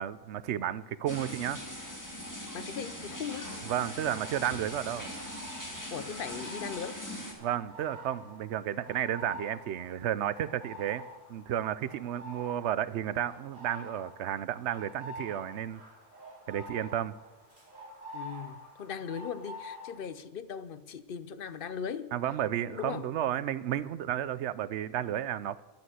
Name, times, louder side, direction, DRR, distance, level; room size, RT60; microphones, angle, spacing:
voice 1, 0.0-1.6 3.6-5.1 7.4-11.0 11.3-15.8 16.5-17.2 22.1-25.6, right 11 dB, 90° right, 17 dB, 0.9 m, -32 dB
sound 1, 1.1-7.3, left 1 dB, 15° left, 2.2 m, -41 dB
voice 2, 2.5-3.5 5.9-7.0 18.1-22.1 22.7-23.1, left 7 dB, 60° left, 14 dB, 0.8 m, -38 dB
sound 2, 4.0-19.9, equal, 45° right, 4.9 m, -48 dB
12.0 x 9.6 x 7.9 m, 1.2 s
omnidirectional pair, 1.1 m